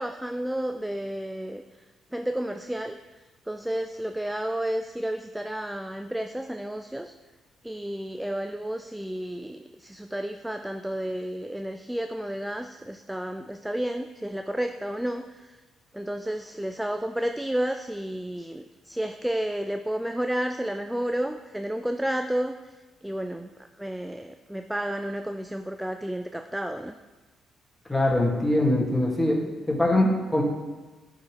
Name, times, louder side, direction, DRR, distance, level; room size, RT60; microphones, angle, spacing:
voice 1, 0.0-1.6 2.1-3.0 3.5-7.1 7.6-15.6 15.9-22.7 23.0-26.9, right 1 dB, 5° right, 7 dB, 0.3 m, -31 dB
voice 2, 27.9-30.4, left 1 dB, 15° left, -3 dB, 2.2 m, -23 dB
11.0 x 3.7 x 3.3 m, 1.2 s
supercardioid pair, 55°, 0 cm